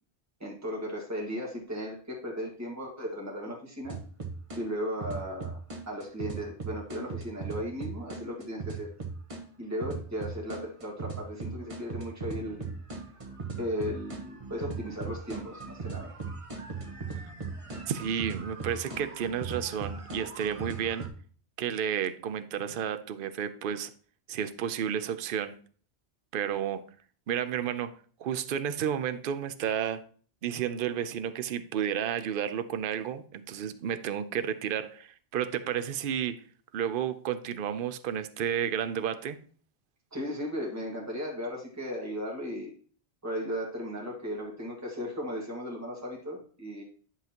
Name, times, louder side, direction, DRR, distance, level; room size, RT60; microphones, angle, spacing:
voice 1, 0.4-4.0 4.5-5.6 5.8-8.9 9.6-12.7 13.6-16.1 40.1-42.7 43.2-46.8, equal, 15° right, 1.8 m, -36 dB
sound 1, 3.8-4.6 5.0-9.4 9.8-21.1, right 4 dB, 30° right, 1.2 m, -38 dB
voice 2, 17.9-21.1 21.6-23.9 24.3-25.6 26.3-26.8 27.3-30.0 30.4-36.4 36.7-39.4, right 9 dB, 60° right, 0.8 m, -32 dB
10.5 x 5.7 x 2.9 m
omnidirectional pair, 1.1 m